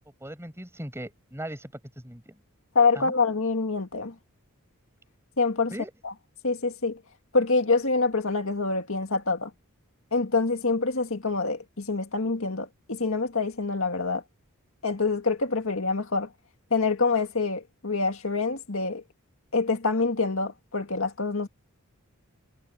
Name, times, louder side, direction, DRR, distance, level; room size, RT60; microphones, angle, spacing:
voice 1, 0.2-2.4 2.9-3.2 5.7-5.9, right 1 dB, 10° right, 7.9 m, -39 dB
voice 2, 2.8-4.1 5.4-5.7 6.4-7.0 7.3-9.5 10.1-14.2 14.8-16.3 16.7-19.0 19.5-21.5, left 4 dB, 65° left, 2.0 m, -26 dB
head